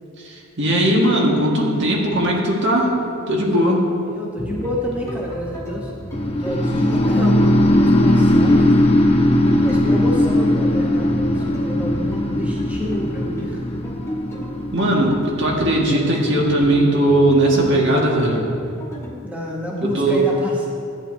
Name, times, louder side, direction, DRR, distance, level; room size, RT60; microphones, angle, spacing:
voice 1, 0.2-2.9 3.3-3.9 14.7-18.4 19.8-20.2, right 1 dB, 60° right, -2 dB, 1.8 m, -18 dB
voice 2, 4.0-5.9 6.4-8.9 9.6-13.6 19.2-20.7, left 1 dB, 5° right, -4 dB, 1.1 m, -29 dB
sound 1, 4.4-19.1, equal, 15° left, 1.5 m, -34 dB
sound 2, 6.1-16.1, left 1 dB, 30° left, 0.8 m, -18 dB
13.5 x 9.0 x 2.8 m, 2.4 s
head